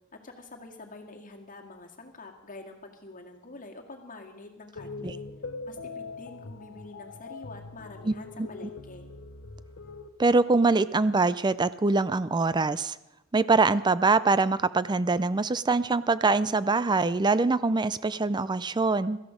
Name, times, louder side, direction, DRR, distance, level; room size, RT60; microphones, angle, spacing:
voice 1, 0.1-5.2 5.7-9.1, left 2 dB, 40° left, 2 dB, 2.0 m, -46 dB
sound 1, 4.8-10.1, left 3 dB, 65° left, 0.9 m, -42 dB
voice 2, 8.0-8.5 10.2-12.9 13.3-19.2, right 3 dB, 20° right, 16 dB, 0.4 m, -24 dB
16.5 x 13.5 x 5.1 m, 0.98 s
head